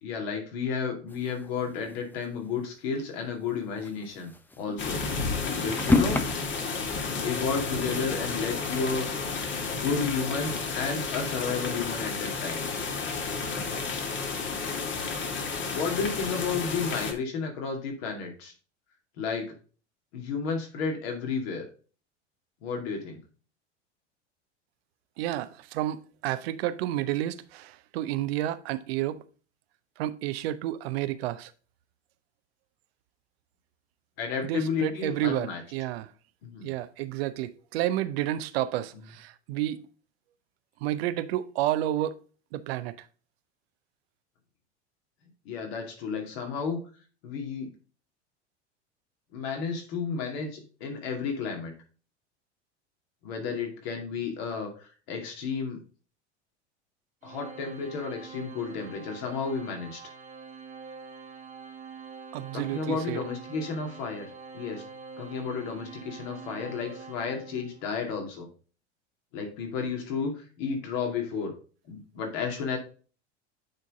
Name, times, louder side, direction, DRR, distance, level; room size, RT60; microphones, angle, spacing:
voice 1, 0.0-5.0 5.6-6.2 7.2-9.1 9.7-12.6 15.7-18.5 19.2-19.5 20.1-21.6 22.6-23.2 34.2-35.6 36.4-36.7 45.5-46.8 47.2-47.7 49.3-51.7 53.2-55.8 57.2-60.0 62.5-64.3 64.5-64.8 65.2-68.5 69.3-71.5 71.9-72.8, left 5 dB, 60° left, 2.3 m, -32 dB
sound 1, 1.1-2.2 2.6-2.7 2.9-3.0 3.6-6.2, left 2 dB, 5° left, 0.6 m, -29 dB
sound 2, 4.8-17.1, left 4 dB, 35° left, 1.5 m, -32 dB
voice 2, 25.2-29.2 30.0-31.5 34.4-36.1 36.6-39.8 40.8-42.2 42.5-43.1 62.3-63.2, right 13 dB, 60° right, 0.7 m, -30 dB
Organ, 57.2-68.0, right 5 dB, 20° right, 1.3 m, -45 dB
8.8 x 3.9 x 3.8 m
hypercardioid pair, 80°, 35 cm